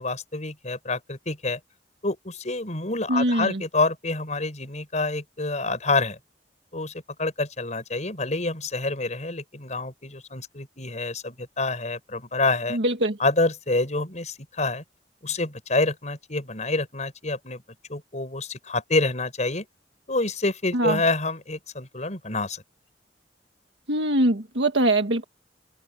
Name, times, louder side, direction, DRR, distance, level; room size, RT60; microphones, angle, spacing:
voice 1, 0.0-1.6 2.0-6.2 6.7-6.9 7.2-12.8 13.2-14.8 15.2-17.6 17.9-19.7 20.1-22.6, left 2 dB, 40° left, 6.1 m, -27 dB
voice 2, 3.1-3.6 12.7-13.2 20.7-21.0 23.9-25.2, right 1 dB, 90° right, 1.7 m, -22 dB
open air
head